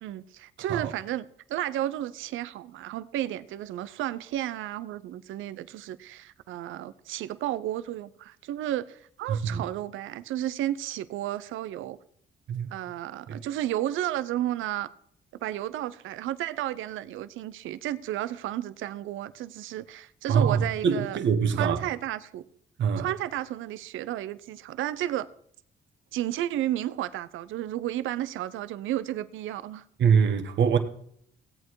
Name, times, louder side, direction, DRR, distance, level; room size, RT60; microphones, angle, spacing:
voice 1, 0.0-12.0 12.7-14.9 15.4-21.2 21.5-22.4 23.0-25.3 26.1-29.8, right 13 dB, 85° right, 0.7 m, -32 dB
voice 2, 9.3-9.6 12.5-12.7 13.3-13.4 20.3-21.8 22.8-23.1 30.0-30.8, right 6 dB, 65° right, 1.5 m, -24 dB
16.5 x 8.4 x 4.7 m
cardioid pair, 90°, 20 cm